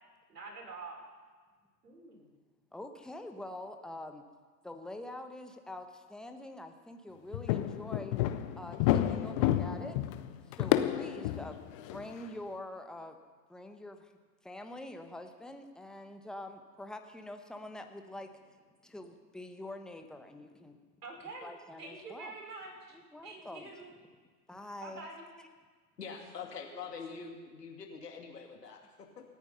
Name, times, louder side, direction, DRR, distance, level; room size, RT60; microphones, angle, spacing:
voice 1, 0.3-1.0 1.8-2.3 21.0-21.5 21.8-23.9 24.8-25.2, right 3 dB, 70° right, 0 dB, 5.5 m, -46 dB
voice 2, 2.7-4.2 4.6-8.2 8.5-10.0 10.6-13.2 13.5-14.1 14.4-18.3 18.8-20.8 21.4-22.3 23.1-23.7 24.5-25.1, left 1 dB, ahead, 5 dB, 1.0 m, -45 dB
sound 1, 7.3-12.1, left 13 dB, 20° left, 0.5 m, -30 dB
voice 3, 26.0-29.2, left 5 dB, 70° left, 2 dB, 2.5 m, -44 dB
27.5 x 9.3 x 5.6 m, 1.5 s
figure-of-eight pair, 105°, 49 cm